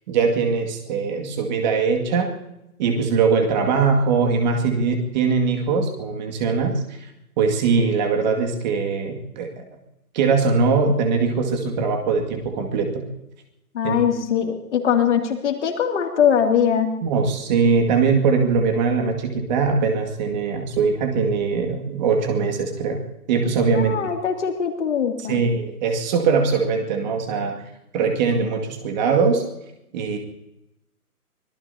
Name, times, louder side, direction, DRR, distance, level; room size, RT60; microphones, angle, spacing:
voice 1, 0.1-2.3 2.8-6.8 7.4-9.6 10.1-13.0 13.8-14.0 17.0-23.0 23.3-24.0 25.3-27.6 27.9-29.4 29.9-30.2, right 5 dB, 30° right, 3 dB, 2.2 m, -21 dB
voice 2, 13.7-17.0 23.7-25.5, left 8 dB, 50° left, 4 dB, 2.7 m, -21 dB
25.0 x 19.0 x 2.8 m, 0.88 s
figure-of-eight pair, 145°, 46 cm